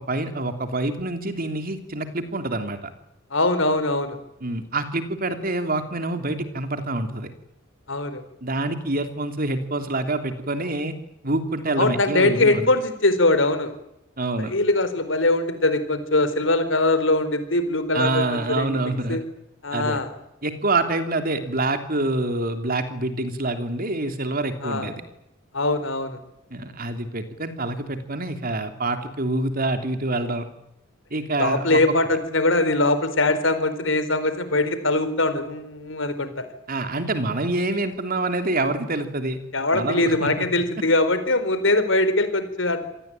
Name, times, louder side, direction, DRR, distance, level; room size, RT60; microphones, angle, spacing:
voice 1, 0.0-2.8 4.4-7.3 8.4-10.9 11.2-12.7 14.2-14.5 17.9-19.2 19.7-20.0 20.4-25.0 26.5-30.5 31.1-31.8 36.7-39.4 39.7-40.5, right 2 dB, 50° right, 7 dB, 3.1 m, -26 dB
voice 2, 3.3-4.2 7.9-8.2 11.8-13.7 14.4-18.8 19.1-19.2 19.6-20.1 24.6-24.9 25.5-26.2 31.4-36.5 39.5-42.8, left 2 dB, 75° left, 11 dB, 4.1 m, -22 dB
27.0 x 19.0 x 9.1 m, 0.84 s
head